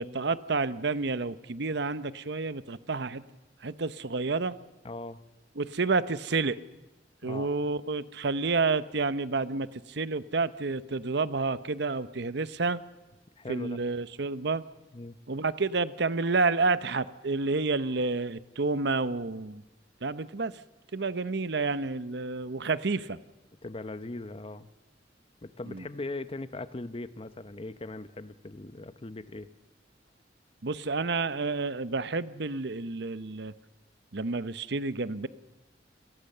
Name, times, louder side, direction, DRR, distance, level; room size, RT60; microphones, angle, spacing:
voice 1, 0.0-3.2 3.6-4.5 5.6-6.6 7.2-12.8 13.5-14.6 15.3-19.6 20.0-20.5 20.9-23.2 25.7-25.8 30.6-33.5 34.1-35.3, right 3 dB, 65° right, 14 dB, 0.8 m, -29 dB
voice 2, 4.8-5.2 7.2-7.5 13.4-13.8 14.9-15.2 23.6-24.7 25.4-29.5, left 2 dB, 30° left, 13 dB, 0.8 m, -39 dB
27.5 x 19.0 x 6.7 m, 1.1 s
head